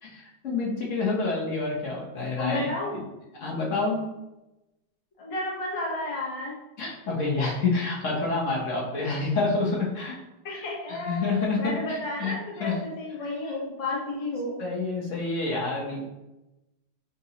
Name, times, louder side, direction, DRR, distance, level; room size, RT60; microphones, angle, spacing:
voice 1, 0.0-3.0 3.3-4.0 6.8-10.1 10.9-12.3 12.6-12.7 14.6-16.0, left 3 dB, 50° left, -4 dB, 1.1 m, -28 dB
voice 2, 2.4-3.0 5.2-6.5 10.4-11.3 11.5-14.5, left 2 dB, 65° left, -4 dB, 0.3 m, -32 dB
7.0 x 2.6 x 2.9 m, 0.98 s
omnidirectional pair, 2.3 m